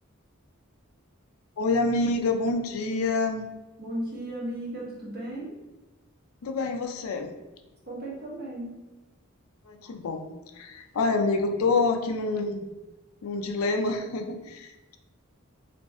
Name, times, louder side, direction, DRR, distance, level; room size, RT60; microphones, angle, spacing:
voice 1, 1.6-3.5 6.4-7.3 9.7-12.7 13.2-15.0, left 3 dB, 90° left, 6 dB, 0.4 m, -27 dB
voice 2, 3.8-5.6 7.8-8.8, right 1 dB, 45° right, -6 dB, 1.3 m, -35 dB
3.1 x 2.6 x 3.6 m, 1.1 s
head